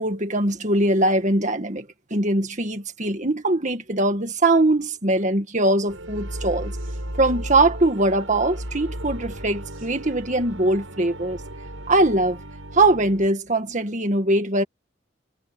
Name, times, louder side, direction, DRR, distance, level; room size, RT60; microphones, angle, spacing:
voice 1, 0.0-1.9 2.1-6.7 7.2-11.4 11.9-12.4 12.7-14.6, right 2 dB, 40° right, 1.9 m, -21 dB
sound 1, 5.9-13.3, right 1 dB, 90° right, 7.9 m, -35 dB
head